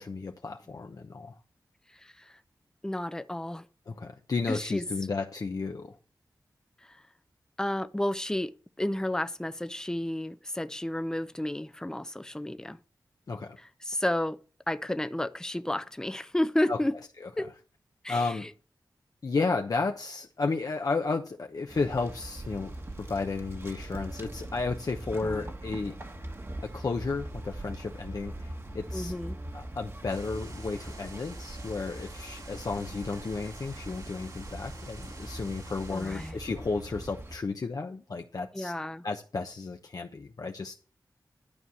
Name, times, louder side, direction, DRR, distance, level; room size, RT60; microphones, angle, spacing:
voice 1, 0.0-1.4 3.9-6.0 13.3-13.6 16.7-16.8 17.2-17.3 18.1-18.5 19.2-25.9 26.6-29.2 29.5-38.7 39.0-40.7, left 4 dB, 60° left, 1.0 m, -33 dB
voice 2, 2.8-3.6 4.5-4.8 7.6-8.5 8.8-12.8 13.8-14.4 14.7-17.0 17.4-17.5 18.0-18.5 25.2-25.5 28.9-29.4 35.9-36.3 38.5-39.0, left 1 dB, 10° left, 0.7 m, -31 dB
sound 1, 21.7-37.4, right 1 dB, 35° right, 1.6 m, -41 dB
sound 2, 30.1-36.3, right 2 dB, 60° right, 2.6 m, -49 dB
12.0 x 4.7 x 7.0 m
wide cardioid pair, 80°, 7 cm